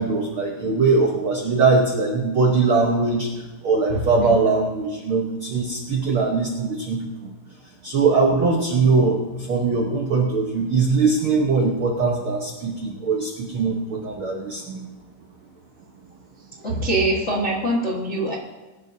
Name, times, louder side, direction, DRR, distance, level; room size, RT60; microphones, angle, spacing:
voice 1, 0.0-3.3 3.6-7.1 7.8-14.8 16.7-16.9, right 4 dB, 75° right, 1 dB, 1.2 m, -21 dB
voice 2, 16.6-18.3, right 1 dB, 75° left, -4 dB, 0.6 m, -23 dB
22.0 x 11.0 x 2.8 m, 1.2 s
omnidirectional pair, 4.1 m